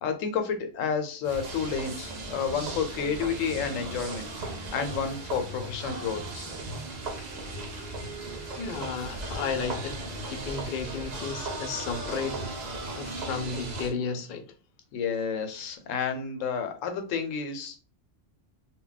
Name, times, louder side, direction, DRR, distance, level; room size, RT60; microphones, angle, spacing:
voice 1, 0.0-6.5 14.9-17.8, left 6 dB, 85° left, 1.0 m, -30 dB
sound 1, 1.2-13.9, right 2 dB, 50° right, 0.5 m, -37 dB
voice 2, 8.6-12.4 13.0-14.5, left 5 dB, 60° left, 0.5 m, -33 dB
2.2 x 2.1 x 3.8 m
omnidirectional pair, 1.3 m